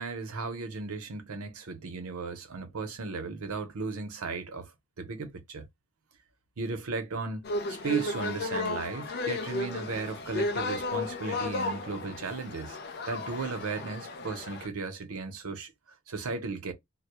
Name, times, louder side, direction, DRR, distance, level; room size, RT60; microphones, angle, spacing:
voice 1, 0.0-4.7 5.0-5.7 6.6-12.8 13.1-15.7 16.1-16.7, right 4 dB, 80° right, 0.7 m, -35 dB
sound 1, 7.4-14.7, left 2 dB, 45° left, 0.3 m, -34 dB
2.1 x 2.1 x 2.9 m
head